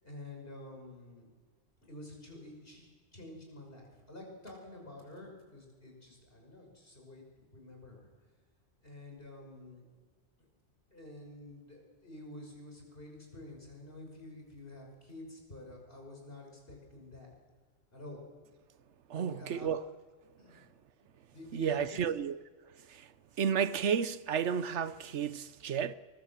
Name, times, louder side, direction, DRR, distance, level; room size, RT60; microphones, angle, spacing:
voice 1, 0.0-1.3 1.9-7.3 7.5-8.1 8.8-9.8 10.9-17.3 17.9-18.2 19.1-19.7 20.4-20.6 21.0-22.0, left 2 dB, 45° left, 6.4 m, -49 dB
voice 2, 19.1-19.8 21.5-22.4 22.9-23.1 23.4-25.9, right 7 dB, 65° right, 1.1 m, -32 dB
23.5 x 21.5 x 7.4 m
omnidirectional pair, 1.3 m